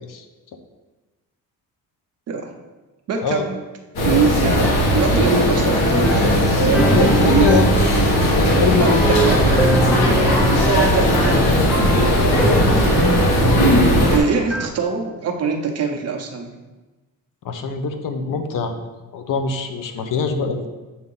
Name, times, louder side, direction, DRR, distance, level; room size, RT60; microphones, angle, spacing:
voice 1, 3.1-3.6 4.0-4.7 4.9-7.6 8.8-9.7 10.6-11.6 14.1-16.5, right 5 dB, 45° right, 3 dB, 0.8 m, -23 dB
sound 1, 4.0-14.2, equal, 85° left, 1.7 m, -17 dB
sound 2, 4.5-14.7, equal, ahead, 0.3 m, -26 dB
voice 2, 7.0-7.7 8.0-9.4 17.4-18.8 19.1-20.7, left 5 dB, 60° left, 6 dB, 0.7 m, -23 dB
7.9 x 2.8 x 5.4 m, 1.2 s
cardioid pair, 180°, 36 cm